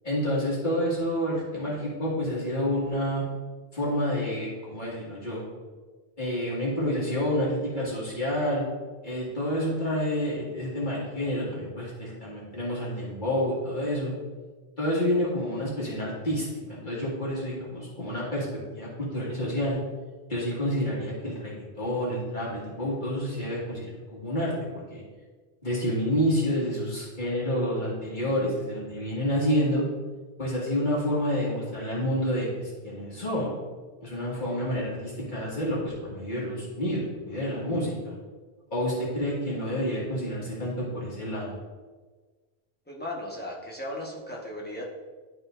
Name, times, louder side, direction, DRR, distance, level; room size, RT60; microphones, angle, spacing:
voice 1, 0.0-3.2 3.7-5.4 6.2-8.7 9.0-14.1 14.8-18.5 18.7-19.8 20.3-24.5 24.9-25.0 25.6-29.8 30.4-33.5 34.0-38.1 38.7-41.6, equal, 50° left, -6 dB, 2.0 m, -29 dB
voice 2, 42.9-44.8, left 1 dB, 10° left, -4 dB, 1.2 m, -36 dB
11.5 x 4.3 x 2.5 m, 1.4 s
omnidirectional pair, 1.1 m